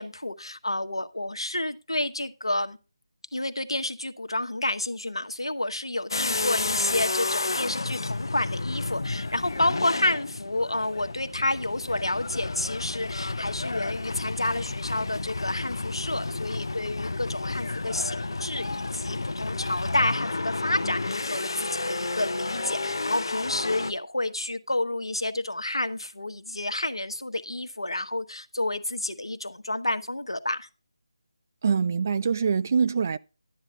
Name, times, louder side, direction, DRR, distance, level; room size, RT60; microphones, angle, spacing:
voice 1, 0.0-2.8 3.3-30.7, left 1 dB, 70° left, 1.3 m, -30 dB
sound 1, 6.1-23.9, left 3 dB, 55° left, 0.8 m, -31 dB
voice 2, 31.6-33.2, right 6 dB, 30° right, 0.4 m, -24 dB
12.0 x 9.6 x 3.6 m
figure-of-eight pair, 155°, 3 cm